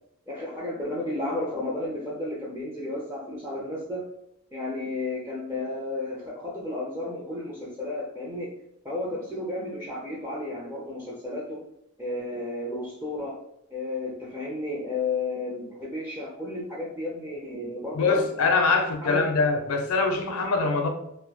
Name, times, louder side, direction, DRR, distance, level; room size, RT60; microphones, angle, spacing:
voice 1, 0.3-4.0 4.5-8.5 8.8-11.6 12.0-13.4 13.7-18.3 19.0-19.2, left 2 dB, 10° right, -5 dB, 0.4 m, -33 dB
voice 2, 17.9-20.9, left 4 dB, 65° left, 4 dB, 0.4 m, -23 dB
2.3 x 2.1 x 2.7 m, 0.78 s
head